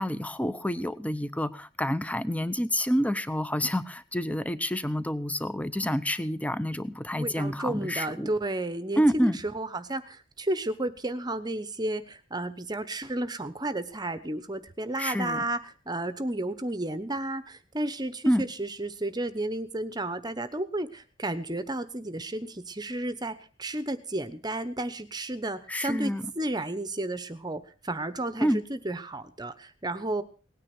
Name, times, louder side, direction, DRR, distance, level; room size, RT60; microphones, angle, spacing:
voice 1, 0.0-8.3 9.0-9.4 15.0-15.4 18.3-18.5 25.7-26.2 28.4-28.6, equal, 5° left, 14 dB, 0.8 m, -28 dB
voice 2, 7.1-30.2, right 1 dB, 20° right, 11 dB, 1.0 m, -32 dB
18.5 x 9.8 x 6.0 m, 0.37 s
head